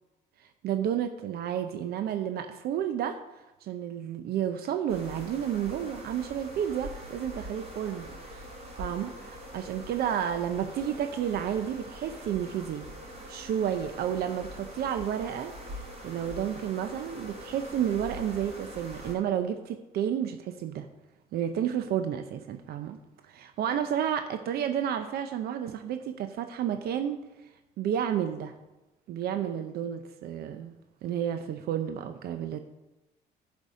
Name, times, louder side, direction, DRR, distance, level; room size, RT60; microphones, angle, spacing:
voice 1, 0.6-3.2 3.6-8.5 8.8-12.8 13.3-15.5 16.0-20.9 21.3-23.0 23.3-27.2 27.8-28.5 29.1-30.7 31.0-32.6, right 9 dB, 70° right, 8 dB, 0.7 m, -31 dB
sound 1, 4.9-19.1, equal, 35° right, 3.9 m, -43 dB
10.5 x 5.3 x 6.2 m, 1.0 s
cardioid pair, 110°, 17 cm